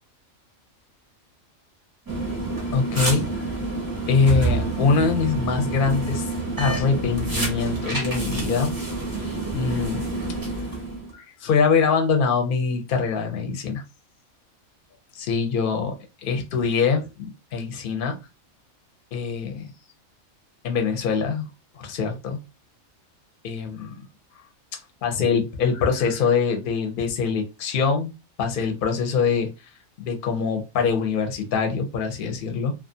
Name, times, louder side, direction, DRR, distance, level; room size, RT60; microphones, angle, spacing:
sound 1, 2.1-11.1, right 2 dB, 25° right, 0.4 m, -28 dB
voice 1, 2.7-3.2 4.1-6.2 6.6-8.8 9.5-10.0 11.1-13.8 15.2-16.0 16.2-18.2 19.1-19.7 20.6-21.5 21.8-22.4 23.4-23.9 25.0-28.1 28.4-29.5 30.0-32.7, left 5 dB, 55° left, 4 dB, 0.6 m, -23 dB
2.4 x 2.3 x 2.5 m, 0.26 s
omnidirectional pair, 1.4 m